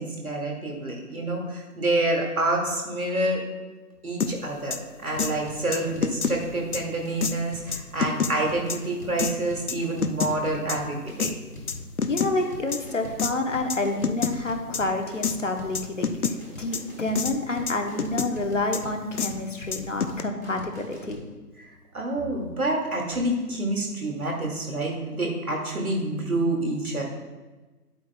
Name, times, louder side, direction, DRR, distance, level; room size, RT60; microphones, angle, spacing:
voice 1, 0.0-3.4 4.0-11.3 21.6-21.7 21.9-27.0, right 2 dB, 65° right, 0 dB, 2.2 m, -27 dB
sound 1, 4.2-4.3 4.7-4.8 5.2-5.3 5.7-6.4 6.7-6.8 7.2-7.3 7.7-8.3 8.7-8.8 9.2-9.3 9.7-10.3 10.7-10.8 11.2-11.3 11.7-12.3 12.7-12.8 13.2-13.3 13.7-13.8 14.0-14.4 14.7-14.8 15.2-15.4 15.8-16.4 16.7-16.8 17.2-17.3 17.7-18.3 18.7-18.8 19.2-19.3 19.7-20.2, left 6 dB, 70° left, 0.7 m, -26 dB
sound 2, 5.1-21.2, left 1 dB, 10° right, 1.6 m, -41 dB
voice 2, 12.1-21.2, left 2 dB, 50° left, 4 dB, 1.0 m, -28 dB
11.0 x 8.3 x 2.2 m, 1.2 s
figure-of-eight pair, 160°, 47 cm